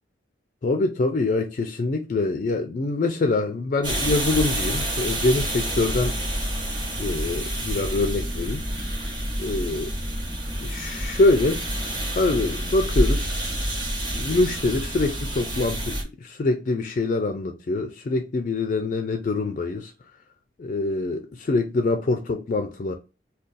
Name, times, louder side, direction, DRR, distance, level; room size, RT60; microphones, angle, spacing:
voice 1, 0.6-6.1 7.0-8.6 9.4-9.9 10.6-11.6 12.1-13.4 14.1-19.9 20.6-22.9, left 2 dB, 45° left, 0.3 m, -24 dB
sound 1, 3.8-16.0, right 1 dB, 25° right, 1.2 m, -28 dB
2.5 x 2.3 x 3.7 m
head